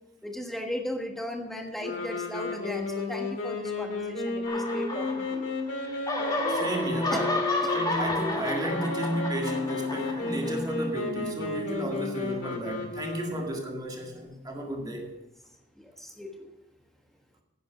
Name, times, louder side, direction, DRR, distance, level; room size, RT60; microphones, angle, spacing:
voice 1, 0.2-5.5 7.1-7.3 7.6-7.7 15.8-16.5, left 1 dB, ahead, 3 dB, 1.4 m, -37 dB
sound 1, 1.8-13.7, left 3 dB, 90° left, 2.1 m, -33 dB
sound 2, 4.5-5.6 5.9-10.8, left 2 dB, 20° left, 1.7 m, -31 dB
voice 2, 6.5-7.4 7.7-15.1, equal, 20° right, 1 dB, 1.9 m, -33 dB
10.5 x 9.1 x 5.5 m, 0.96 s
head